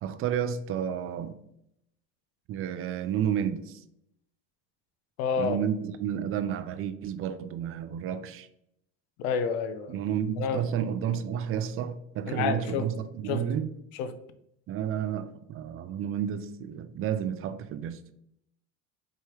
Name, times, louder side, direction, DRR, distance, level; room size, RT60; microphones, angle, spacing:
voice 1, 0.0-1.3 2.5-3.8 5.4-8.5 9.9-13.7 14.7-18.0, right 9 dB, 45° right, 0.4 m, -31 dB
voice 2, 5.2-5.6 9.2-10.0 10.4-10.6 12.3-12.9 13.2-13.4 13.9-14.1, left 6 dB, 85° left, 0.6 m, -29 dB
4.6 x 3.1 x 2.9 m
supercardioid pair, 100°, 31 cm